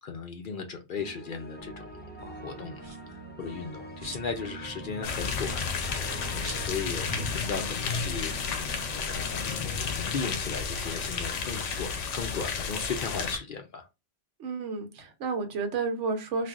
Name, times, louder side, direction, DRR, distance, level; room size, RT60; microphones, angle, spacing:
voice 1, 0.0-1.7 2.2-2.8 3.1-8.3 9.1-9.4 9.9-13.9, left 5 dB, 55° left, 0.6 m, -36 dB
sound 1, 1.0-11.0, right 1 dB, 15° left, 0.3 m, -43 dB
sound 2, 2.8-3.2 3.6-4.5 4.8-4.9 5.1-7.0 7.3-7.4 7.6-7.9 8.2-8.3 8.6-9.0 9.7-11.5 11.9-13.3, right 1 dB, 25° right, 0.8 m, -49 dB
sound 3, 5.0-13.4, left 5 dB, 85° left, 1.0 m, -32 dB
voice 2, 14.4-16.5, right 4 dB, 80° right, 1.1 m, -31 dB
3.7 x 2.5 x 2.3 m
omnidirectional pair, 1.2 m